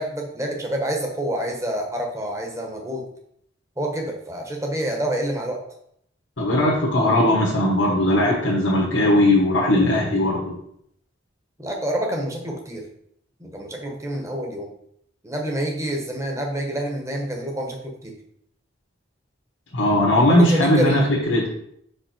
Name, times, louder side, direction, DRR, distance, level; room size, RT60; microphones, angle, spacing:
voice 1, 0.0-3.0 3.8-5.6 11.6-12.9 13.4-14.7 15.2-18.1 20.2-21.1, right 1 dB, 15° right, 1 dB, 1.1 m, -27 dB
voice 2, 6.4-10.5 19.7-21.5, left 1 dB, 90° left, -6 dB, 1.5 m, -19 dB
5.5 x 5.3 x 4.4 m, 0.71 s
head